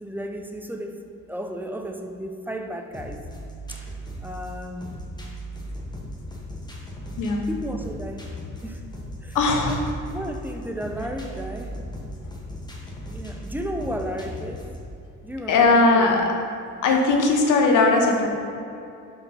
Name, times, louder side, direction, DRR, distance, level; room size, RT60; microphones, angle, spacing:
voice 1, 0.0-1.0 1.3-3.2 3.7-3.8 4.2-5.0 7.5-8.2 8.6-8.8 9.2-9.4 9.6-11.7 13.1-14.7 15.2-16.3, equal, 5° right, 4 dB, 0.6 m, -33 dB
sound 1, 2.9-14.9, equal, 15° left, 1.2 m, -37 dB
voice 2, 9.3-9.8 15.5-16.3 16.8-18.3, left 3 dB, 85° left, 2 dB, 1.0 m, -19 dB
5.3 x 4.9 x 5.3 m, 2.6 s
cardioid pair, 90°, 30 cm